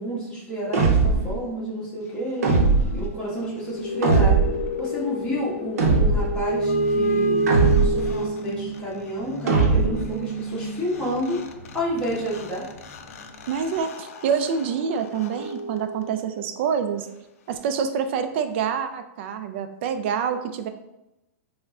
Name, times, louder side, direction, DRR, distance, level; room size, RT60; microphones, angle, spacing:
voice 1, 0.0-2.5 2.9-4.3 4.8-7.4 7.8-11.4 11.7-12.6, equal, 10° left, -8 dB, 1.3 m, -30 dB
sound 1, 0.7-1.4 2.4-3.1 4.0-4.7 5.8-6.4 7.5-8.1 9.5-10.1, right 4 dB, 85° right, 0.7 m, -19 dB
sound 2, 3.4-8.8 10.7-10.8 10.9-16.4, equal, 80° left, 0.4 m, -29 dB
sound 3, 3.4-13.8, right 4 dB, 10° right, 1.3 m, -37 dB
voice 2, 13.5-17.1 17.5-20.7, right 7 dB, 50° right, 8 dB, 0.3 m, -26 dB
3.4 x 2.1 x 3.6 m, 0.92 s
supercardioid pair, 155°, 8 cm